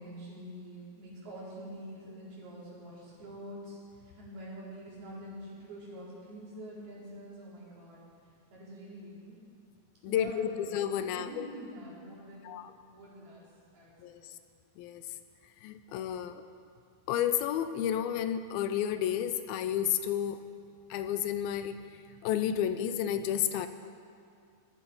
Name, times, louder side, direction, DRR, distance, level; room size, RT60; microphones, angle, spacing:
voice 1, 0.0-8.0 8.5-9.4 10.1-10.6 11.0-12.5 12.9-13.4 13.7-14.2, equal, 85° right, -8 dB, 6.3 m, -46 dB
voice 2, 10.0-11.5 12.4-12.7 14.0-14.2 14.8-15.0 15.6-16.4 17.1-20.4 20.9-21.8 22.2-23.7, left 10 dB, 80° left, 10 dB, 2.4 m, -31 dB
18.5 x 12.0 x 5.6 m, 2.3 s
omnidirectional pair, 4.3 m